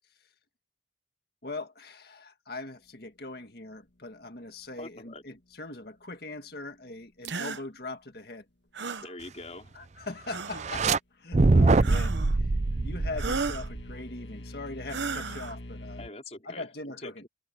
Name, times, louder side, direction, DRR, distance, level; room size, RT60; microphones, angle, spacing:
voice 1, 1.4-8.5 9.7-10.9 11.1-12.5 12.8-16.0 16.5-17.2, left 2 dB, 55° left, 1.9 m, -41 dB
voice 2, 4.8-5.2 8.8-9.8 16.0-17.3, left 2 dB, 35° left, 4.7 m, -44 dB
sound 1, 7.2-7.6 8.7-9.1 10.3-10.7 11.8-12.4 13.2-13.7 14.9-15.5, right 4 dB, 70° right, 1.1 m, -34 dB
sound 2, 10.5-11.0 11.3-13.9, right 3 dB, 35° right, 0.5 m, -23 dB
sound 3, 11.6-16.1, left 1 dB, 70° left, 1.8 m, -45 dB
head